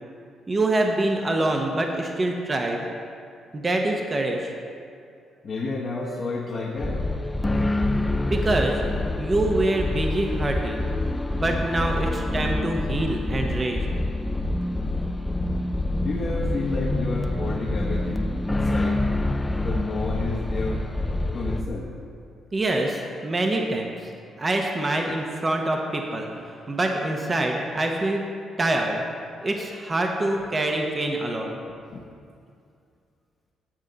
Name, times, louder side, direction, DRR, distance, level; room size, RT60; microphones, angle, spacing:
voice 1, 0.5-2.8 3.5-4.5 8.2-8.8 9.2-10.9 11.3-13.9 22.5-24.1 24.4-28.2 28.6-29.0 29.4-31.6, right 2 dB, 30° right, 2 dB, 0.8 m, -25 dB
voice 2, 5.4-7.0 16.0-19.0 19.6-20.8 21.3-21.9 31.9-32.0, left 3 dB, 50° left, -5 dB, 1.0 m, -31 dB
sound 1, 6.8-21.6, left 2 dB, 15° left, 0.5 m, -26 dB
8.9 x 7.3 x 4.0 m, 2.4 s
cardioid pair, 90°, 0 cm